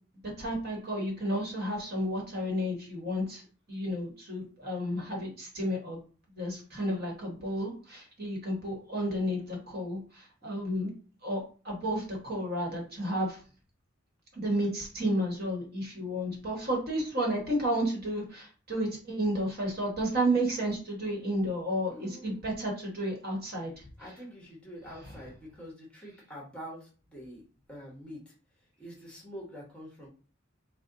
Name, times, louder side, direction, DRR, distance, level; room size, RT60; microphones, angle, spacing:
voice 1, 0.2-3.4 3.7-6.0 6.3-10.9 11.2-13.4 14.3-23.7, equal, 50° right, -1 dB, 1.3 m, -32 dB
voice 2, 21.9-22.4 24.0-27.4 27.7-28.3 28.8-30.1, equal, 5° left, -3 dB, 1.2 m, -46 dB
4.1 x 2.2 x 3.8 m, 0.38 s
head